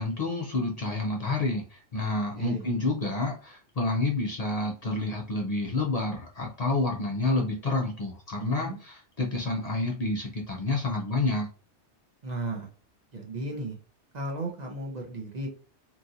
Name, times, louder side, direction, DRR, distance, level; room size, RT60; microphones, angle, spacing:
voice 1, 0.0-11.5, left 2 dB, 50° left, 0 dB, 0.5 m, -29 dB
voice 2, 8.4-8.8 12.2-12.7 13.1-13.8 14.1-15.5, right 2 dB, 45° right, 1 dB, 0.7 m, -35 dB
3.0 x 2.5 x 2.7 m, 0.37 s
omnidirectional pair, 1.2 m